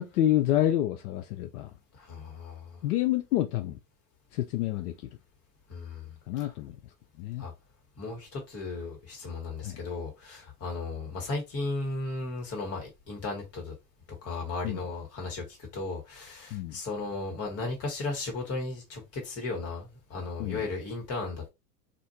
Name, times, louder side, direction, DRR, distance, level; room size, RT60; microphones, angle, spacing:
voice 1, 0.0-1.7 2.8-3.8 4.3-4.9 6.3-6.8 7.2-7.5 9.6-9.8 14.6-14.8 16.5-16.8 20.4-20.6, left 13 dB, 75° left, 0.5 m, -28 dB
voice 2, 1.9-2.8 5.7-6.2 6.4-6.5 7.4-7.5 8.0-13.7 14.2-21.5, left 3 dB, 30° left, 1.5 m, -35 dB
2.6 x 2.5 x 2.7 m
hypercardioid pair, 105°, 47 cm